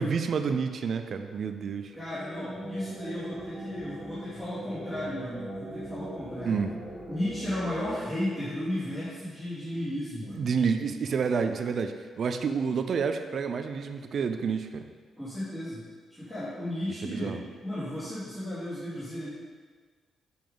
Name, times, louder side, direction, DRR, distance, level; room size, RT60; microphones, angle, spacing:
voice 1, 0.0-1.9 6.5-6.7 10.3-14.9 17.0-17.4, right 5 dB, 50° right, 8 dB, 0.5 m, -29 dB
voice 2, 1.9-6.6 7.1-10.5 15.2-15.8 16.1-19.3, left 1 dB, 10° left, -13 dB, 2.5 m, -34 dB
sound 1, 1.9-9.3, right 1 dB, 5° right, 2.5 m, -41 dB
7.6 x 7.0 x 3.9 m, 1.5 s
cardioid pair, 150°, 0 cm